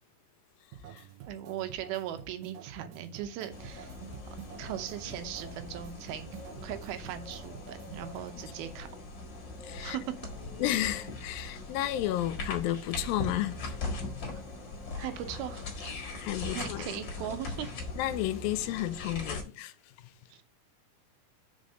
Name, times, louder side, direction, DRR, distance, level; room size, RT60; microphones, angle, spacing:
sound 1, 0.7-8.5, right 8 dB, 70° right, 2.2 m, -48 dB
voice 1, 1.3-3.9 4.6-8.9 9.8-10.0 14.3-14.4 15.0-15.6 16.5-17.7 20.3-20.4, right 11 dB, 90° right, 2.7 m, -39 dB
sound 2, 3.5-19.4, left 3 dB, 45° left, 1.6 m, -40 dB
voice 2, 9.6-10.0 10.6-13.7 16.2-16.9 18.0-19.7, left 14 dB, 85° left, 2.3 m, -32 dB
5.2 x 5.2 x 6.4 m
omnidirectional pair, 4.2 m